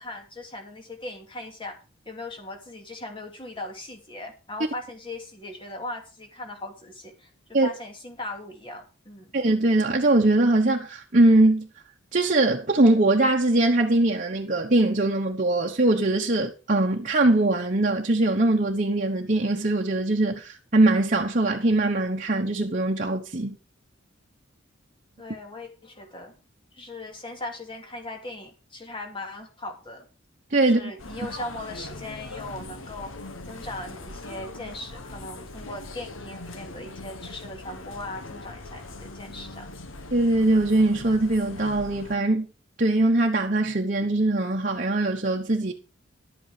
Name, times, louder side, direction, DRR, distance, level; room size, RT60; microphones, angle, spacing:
voice 1, 0.0-1.8 2.1-9.3 25.2-26.3 26.7-30.1 30.6-33.1 33.4-39.7, left 2 dB, 25° left, 2.6 m, -39 dB
voice 2, 9.3-11.7 12.1-23.6 30.5-30.9 40.1-42.5 42.8-45.7, right 2 dB, 40° right, 1.1 m, -22 dB
sound 1, 31.0-42.2, left 2 dB, 85° left, 1.5 m, -41 dB
11.5 x 8.6 x 5.0 m
head